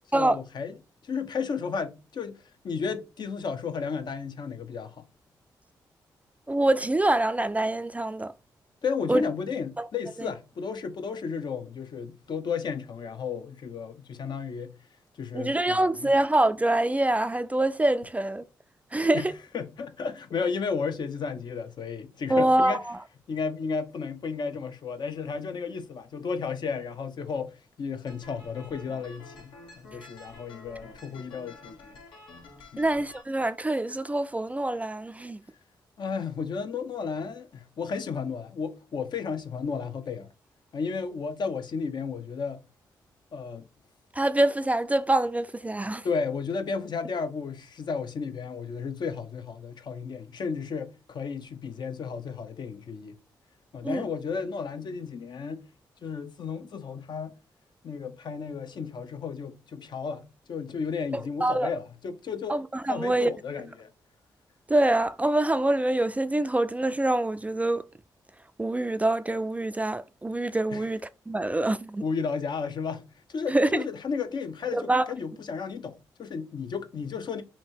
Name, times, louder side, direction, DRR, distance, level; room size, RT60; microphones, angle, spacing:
voice 1, 0.1-0.7 1.0-2.4 2.6-5.1 8.8-14.7 15.2-16.1 19.1-22.8 23.3-27.5 27.8-32.0 32.7-32.9 36.0-40.3 40.7-42.6 43.3-43.7 46.0-53.2 53.7-55.6 56.0-57.4 57.8-62.6 62.9-63.9 70.7-70.9 72.0-73.0 73.3-77.4, left 5 dB, 60° left, 0.7 m, -33 dB
voice 2, 6.5-8.3 9.1-9.2 9.8-9.9 15.3-18.4 18.9-19.3 22.3-22.8 32.8-35.4 44.2-46.1 53.8-54.0 61.1-61.7 62.5-63.3 64.7-67.8 68.6-71.0 71.3-72.0 73.5-73.8 74.7-75.0, right 1 dB, 15° right, 0.3 m, -25 dB
sound 1, 28.1-33.2, left 2 dB, 80° left, 1.3 m, -49 dB
2.9 x 2.7 x 4.4 m
supercardioid pair, 50°, 8 cm